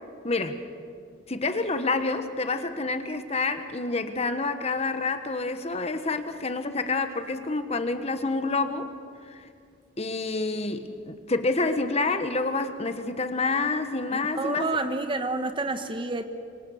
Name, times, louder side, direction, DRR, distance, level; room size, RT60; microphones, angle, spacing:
voice 1, 0.2-0.6 1.3-8.9 9.3-9.5 10.0-14.7, left 3 dB, 35° left, 9 dB, 1.3 m, -28 dB
voice 2, 14.1-16.2, right 2 dB, 25° right, 8 dB, 1.1 m, -29 dB
26.0 x 24.5 x 6.5 m, 2.3 s
head